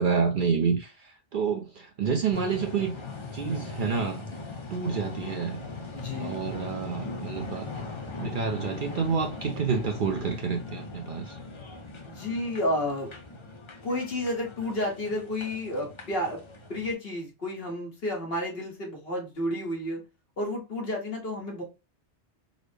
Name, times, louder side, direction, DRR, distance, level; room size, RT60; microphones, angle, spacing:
voice 1, 0.0-2.9 3.3-4.2 4.7-5.6 6.2-7.7 8.2-11.4, right 5 dB, 55° right, 0.6 m, -28 dB
sound 1, 2.3-16.9, left 3 dB, 40° left, 0.5 m, -40 dB
voice 2, 5.9-6.4 12.0-13.1 13.8-16.4 16.7-20.0 20.4-21.6, left 1 dB, 60° left, 1.4 m, -31 dB
3.9 x 2.0 x 3.2 m
omnidirectional pair, 1.2 m